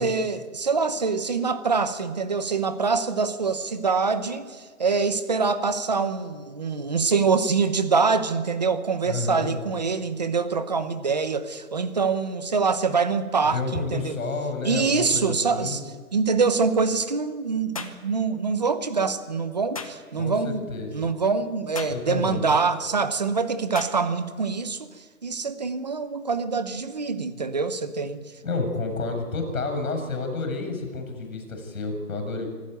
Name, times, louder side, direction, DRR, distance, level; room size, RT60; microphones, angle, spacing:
voice 1, 0.0-14.1 14.6-15.8 16.1-20.6 20.9-24.9 25.2-28.2, right 4 dB, 30° right, 12 dB, 1.0 m, -25 dB
voice 2, 9.0-9.5 13.5-15.8 20.2-21.1 21.9-22.5 28.4-32.5, left 3 dB, 65° left, 6 dB, 7.3 m, -30 dB
sound 1, 17.7-18.0 19.7-20.0 21.7-22.0 23.7-24.0, left 4 dB, 25° left, 1.0 m, -35 dB
25.5 x 12.5 x 9.3 m, 1.5 s
hypercardioid pair, 180°, 44 cm